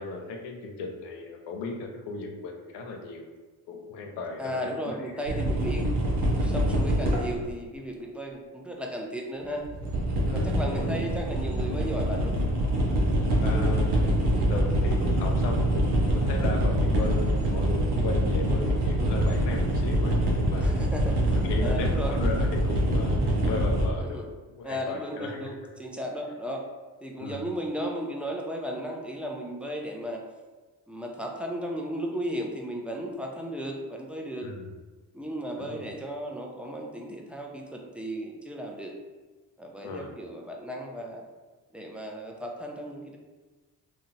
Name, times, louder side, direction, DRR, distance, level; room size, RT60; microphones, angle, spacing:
voice 1, 0.0-3.3 3.7-4.6 4.8-5.0 10.3-10.9 13.4-13.9 14.5-20.9 21.3-24.2 24.5-25.4 27.2-27.4 34.4-34.7 35.6-35.9 39.8-40.2, left 3 dB, 80° left, 3 dB, 0.5 m, -36 dB
voice 2, 4.4-5.9 6.2-9.7 10.3-12.4 14.2-14.4 20.6-21.4 21.6-22.3 24.0-24.3 24.6-26.6 27.0-30.2 30.9-34.5 35.1-38.9 39.6-41.2 41.7-43.2, equal, 5° right, 0 dB, 0.4 m, -35 dB
sound 1, 5.3-7.4 9.4-23.9, right 1 dB, 70° right, 0.7 m, -25 dB
2.8 x 2.1 x 2.6 m, 1.3 s
supercardioid pair, 55°, 41 cm